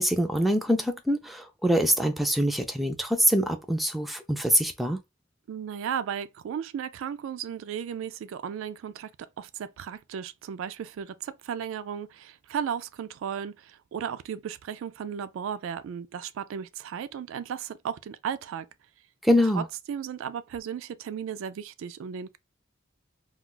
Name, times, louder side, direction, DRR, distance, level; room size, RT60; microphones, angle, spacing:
voice 1, 0.0-5.0 19.2-19.7, equal, ahead, 0.4 m, -24 dB
voice 2, 5.5-18.7 19.6-22.4, right 8 dB, 80° right, 0.3 m, -35 dB
2.4 x 2.3 x 3.7 m
head